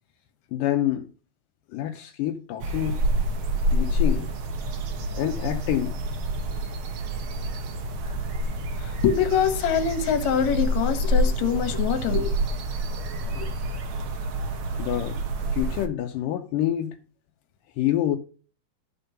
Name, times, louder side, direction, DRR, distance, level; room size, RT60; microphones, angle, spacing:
voice 1, 0.5-1.1 1.7-3.0 3.7-4.3 5.1-5.9 14.7-17.0 17.8-18.2, left 12 dB, 80° left, 2.3 m, -27 dB
sound 1, 2.6-15.9, right 1 dB, 65° right, 1.3 m, -27 dB
voice 2, 8.8-12.3 13.4-13.5, left 8 dB, 60° left, 2.4 m, -24 dB
12.5 x 5.4 x 5.7 m
omnidirectional pair, 4.0 m